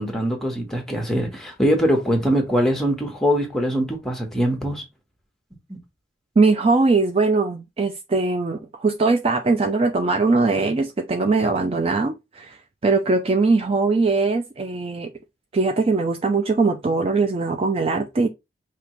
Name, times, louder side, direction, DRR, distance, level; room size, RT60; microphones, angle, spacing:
voice 1, 0.0-4.8 5.7-5.8, equal, 5° left, 1.2 m, -22 dB
voice 2, 6.4-12.6 12.8-15.1 15.5-18.3, right 3 dB, 35° right, 0.4 m, -21 dB
5.1 x 2.8 x 3.1 m
head